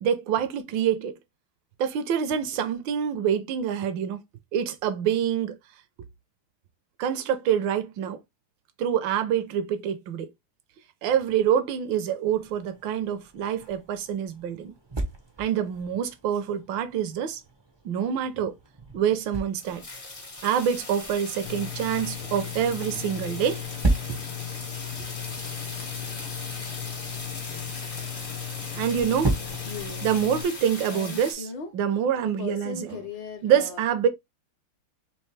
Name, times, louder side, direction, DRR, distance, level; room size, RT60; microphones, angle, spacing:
voice 1, 0.0-1.2 1.8-4.2 4.5-5.6 7.0-8.2 8.8-10.3 11.0-14.7 15.4-17.4 17.8-18.5 18.9-19.8 20.4-23.6 28.8-29.4 30.0-31.5 31.7-33.0 33.4-34.1, right 8 dB, 70° right, 1.3 m, -26 dB
sound 1, 12.2-31.1, right 2 dB, 45° right, 0.3 m, -36 dB
sound 2, 19.6-31.3, left 2 dB, 40° left, 0.5 m, -39 dB
Engine, 21.4-30.4, left 10 dB, 85° left, 1.7 m, -37 dB
voice 2, 29.7-30.1 30.9-31.7 32.4-33.8, left 5 dB, 65° left, 1.6 m, -38 dB
4.4 x 3.1 x 3.1 m
omnidirectional pair, 2.4 m